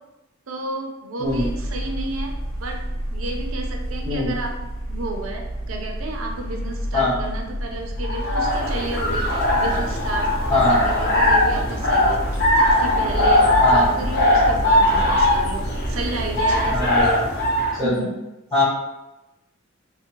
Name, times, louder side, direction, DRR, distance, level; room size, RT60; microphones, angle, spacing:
voice 1, 0.5-2.3 2.6-2.8 3.1-4.5 4.9-12.2 12.6-17.1 17.8-18.1, right 2 dB, 75° right, 2 dB, 0.5 m, -32 dB
sound 1, 1.2-17.0, equal, 90° left, 0.5 m, -30 dB
sound 2, 8.0-17.8, left 1 dB, 55° left, 0.9 m, -20 dB
voice 2, 16.7-17.2 17.8-18.0 18.5-18.6, left 2 dB, 15° left, -11 dB, 0.6 m, -21 dB
2.6 x 2.1 x 2.9 m, 0.96 s
head